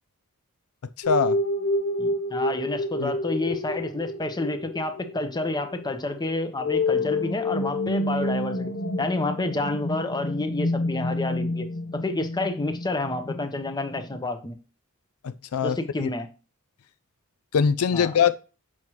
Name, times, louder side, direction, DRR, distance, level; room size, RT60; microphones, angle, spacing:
sound 1, 1.0-14.2, left 2 dB, 55° left, 0.8 m, -29 dB
voice 1, 1.1-1.4 3.0-3.1 15.2-16.1 17.5-18.3, left 7 dB, 80° left, 0.4 m, -23 dB
voice 2, 2.0-8.7 9.0-11.7 11.9-14.6 15.6-16.3 17.9-18.2, left 2 dB, 20° left, 0.8 m, -29 dB
7.2 x 6.1 x 3.1 m
head